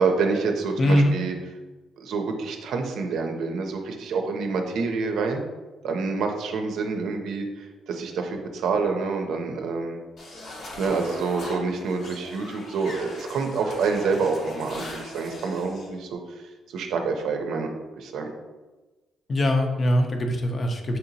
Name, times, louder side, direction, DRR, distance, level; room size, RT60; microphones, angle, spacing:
voice 1, 0.0-1.4 2.0-5.4 5.8-10.0 10.8-16.2 16.7-18.3, right 4 dB, 80° right, 4 dB, 0.5 m, -27 dB
voice 2, 0.8-1.1 19.3-21.0, left 1 dB, 40° left, 4 dB, 0.5 m, -22 dB
sound 1, 10.2-15.9, left 2 dB, 60° left, 0.9 m, -40 dB
5.4 x 2.8 x 2.7 m, 1.2 s
cardioid pair, 90°, 0 cm